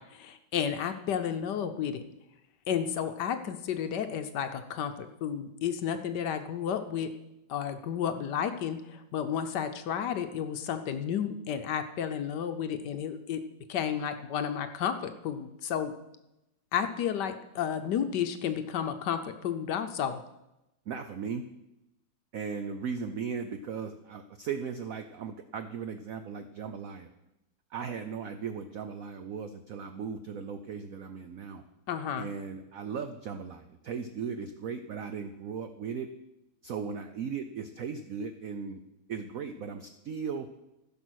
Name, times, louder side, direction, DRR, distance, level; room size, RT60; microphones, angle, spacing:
voice 1, 0.1-2.0 2.7-4.9 5.2-7.1 7.5-13.4 13.7-15.9 16.7-20.2 31.9-32.3, left 8 dB, 70° left, 8 dB, 1.2 m, -32 dB
voice 2, 20.9-21.4 22.3-27.1 27.7-31.6 32.2-36.1 36.6-38.8 39.1-40.5, right 6 dB, 75° right, 8 dB, 0.7 m, -37 dB
15.0 x 5.9 x 6.3 m, 0.92 s
omnidirectional pair, 2.2 m